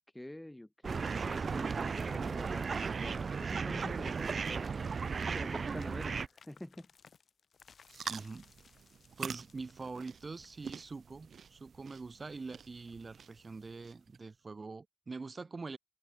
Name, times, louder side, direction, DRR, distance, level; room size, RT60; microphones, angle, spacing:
voice 1, 0.1-4.7 5.2-6.9, left 1 dB, 10° left, 0.8 m, -47 dB
sound 1, 0.8-6.3, right 5 dB, 55° right, 0.3 m, -35 dB
sound 2, 5.8-11.3, left 6 dB, 70° left, 6.8 m, -62 dB
sound 3, 7.9-14.2, right 6 dB, 75° right, 2.2 m, -47 dB
voice 2, 8.1-8.5 9.2-15.8, right 4 dB, 40° right, 3.0 m, -44 dB
cardioid pair, 80°, 0 cm